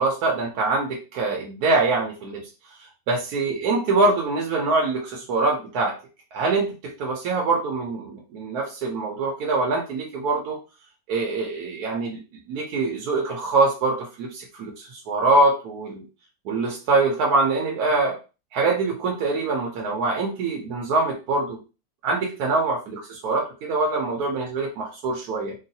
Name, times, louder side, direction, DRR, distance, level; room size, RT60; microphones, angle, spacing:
voice 1, 0.0-2.5 3.1-6.0 6.3-10.6 11.1-12.2 12.5-16.0 16.4-18.2 18.5-21.6 22.0-25.5, right 3 dB, 80° right, -1 dB, 1.2 m, -24 dB
3.8 x 2.3 x 2.7 m, 0.31 s
omnidirectional pair, 1.6 m